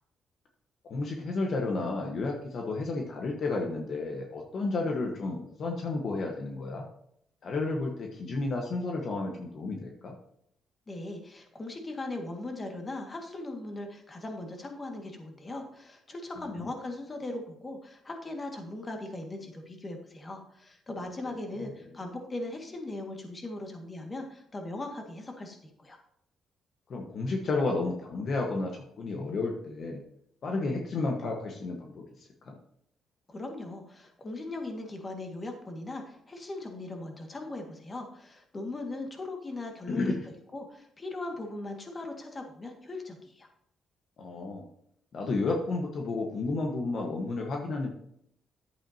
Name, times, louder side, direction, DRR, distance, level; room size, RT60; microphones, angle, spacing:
voice 1, 0.9-6.8 7.4-10.1 16.6-16.7 21.5-21.7 26.9-30.0 30.4-32.5 39.9-40.2 44.2-44.6 45.1-47.9, left 3 dB, 55° left, 1 dB, 1.3 m, -32 dB
voice 2, 10.9-26.0 33.3-40.0 40.5-43.5, left 2 dB, 30° left, 3 dB, 1.9 m, -39 dB
10.5 x 8.3 x 2.8 m, 0.72 s
cardioid pair, 90°, 0 cm